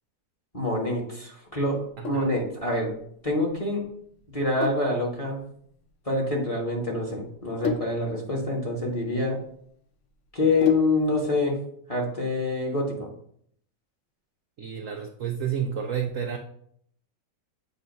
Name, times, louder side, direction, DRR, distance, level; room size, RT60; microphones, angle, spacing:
voice 1, 0.5-1.8 2.1-2.9 3.2-3.8 4.3-5.4 6.0-9.4 10.3-11.6 11.9-12.9, left 2 dB, 20° left, -2 dB, 1.2 m, -26 dB
Sink (filling or washing), 1.7-11.2, left 6 dB, 60° left, 0.8 m, -37 dB
voice 2, 2.0-2.3 14.6-16.4, right 8 dB, 80° right, 3 dB, 0.7 m, -30 dB
8.1 x 2.7 x 5.2 m, 0.66 s
omnidirectional pair, 2.0 m